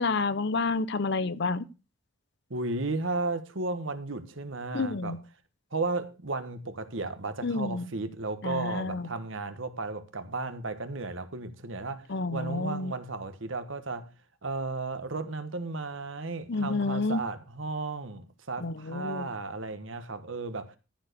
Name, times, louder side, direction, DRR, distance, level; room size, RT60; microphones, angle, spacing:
voice 1, 0.0-1.6 4.7-5.2 7.4-7.9 8.4-9.1 12.1-12.9 16.5-17.2 18.6-19.3, left 3 dB, 60° left, 0.8 m, -29 dB
voice 2, 2.5-5.1 5.7-12.0 12.3-14.1 14.4-20.8, right 3 dB, 70° right, 1.4 m, -34 dB
14.5 x 4.9 x 6.7 m
head